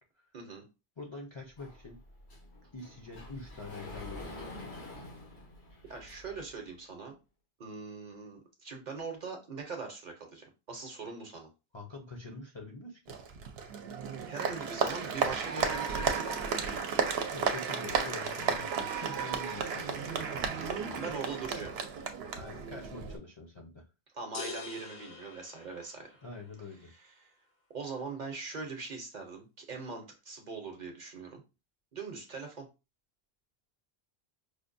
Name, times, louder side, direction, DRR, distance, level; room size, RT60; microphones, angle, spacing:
voice 1, 0.3-0.6 5.9-7.2 7.6-11.5 14.3-16.8 20.9-21.7 24.1-26.1 26.8-27.3 27.7-31.4 31.9-32.7, right 4 dB, 50° right, 3 dB, 0.8 m, -41 dB
voice 2, 1.0-2.0 2.7-4.5 11.7-13.0 17.3-21.2 22.3-23.8 26.2-26.9, left 3 dB, 35° left, -1 dB, 0.5 m, -45 dB
Sliding door, 1.6-6.5, left 2 dB, 90° left, 1.4 m, -47 dB
Applause, 13.1-23.2, right 6 dB, 80° right, 0.8 m, -33 dB
sound 1, 24.3-26.4, left 4 dB, 65° left, 0.9 m, -44 dB
4.9 x 2.2 x 2.5 m, 0.28 s
omnidirectional pair, 1.1 m